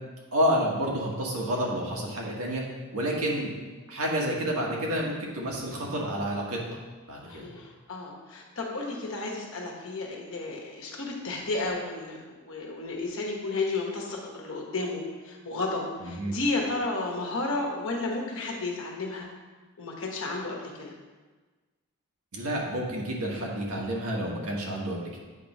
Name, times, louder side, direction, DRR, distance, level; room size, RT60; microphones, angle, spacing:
voice 1, 0.3-2.6 2.9-3.5 3.9-6.8 7.1-7.5 16.0-16.4 22.3-25.2, equal, 75° right, -2 dB, 1.4 m, -29 dB
voice 2, 7.2-19.3 19.8-20.9, left 3 dB, 65° left, 0 dB, 1.2 m, -32 dB
8.0 x 3.0 x 5.3 m, 1.3 s
head